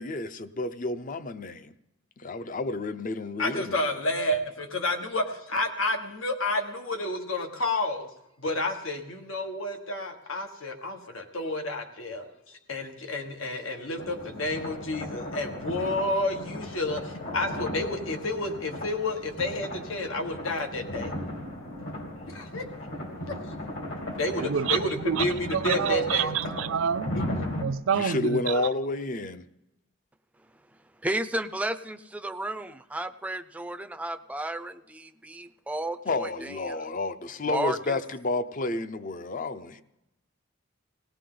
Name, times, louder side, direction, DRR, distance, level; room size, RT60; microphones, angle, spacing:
voice 1, 0.0-1.7 2.2-3.9 27.9-29.4 36.1-39.8, left 2 dB, 40° left, 0.6 m, -30 dB
voice 2, 3.4-8.1 8.4-21.1 22.3-22.6 23.0-23.2 24.2-26.3 27.1-27.2, left 2 dB, 85° left, 1.4 m, -30 dB
sound 1, 14.0-27.6, left 1 dB, 65° left, 2.8 m, -36 dB
voice 3, 25.5-27.1 27.6-28.6, right 7 dB, 80° right, 0.4 m, -27 dB
voice 4, 31.0-36.8 37.5-38.0, right 1 dB, 5° right, 0.5 m, -33 dB
18.0 x 18.0 x 3.9 m
head